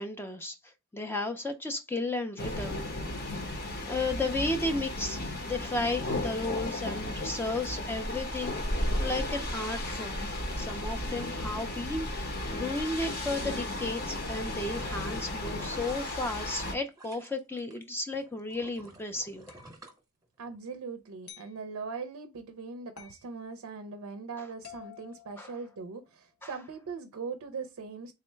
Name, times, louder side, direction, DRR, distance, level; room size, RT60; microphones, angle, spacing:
voice 1, 0.0-2.9 3.3-3.4 3.9-8.6 8.9-10.3 10.6-19.5 25.4-25.5 26.4-26.5, left 2 dB, 10° left, 0.3 m, -34 dB
sound 1, 2.4-16.7, left 1 dB, 45° left, 0.7 m, -34 dB
sound 2, 13.7-17.8 18.1-20.7 21.1-21.2, right 1 dB, 15° right, 0.8 m, -52 dB
sound 3, 19.5-19.7 21.3-21.6 23.0-23.3 24.6-26.1, left 9 dB, 85° left, 0.9 m, -50 dB
voice 2, 20.4-28.1, right 4 dB, 70° right, 0.4 m, -40 dB
3.7 x 2.1 x 4.3 m
head